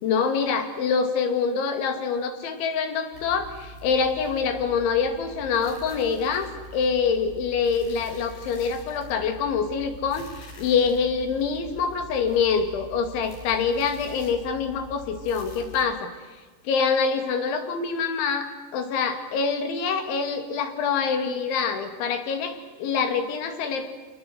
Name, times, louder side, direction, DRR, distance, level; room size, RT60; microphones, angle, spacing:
voice 1, 0.0-23.9, left 5 dB, 85° left, 7 dB, 4.7 m, -25 dB
sound 1, 3.1-15.9, equal, 60° left, 8.4 m, -44 dB
29.0 x 19.5 x 8.2 m, 1.3 s
omnidirectional pair, 5.2 m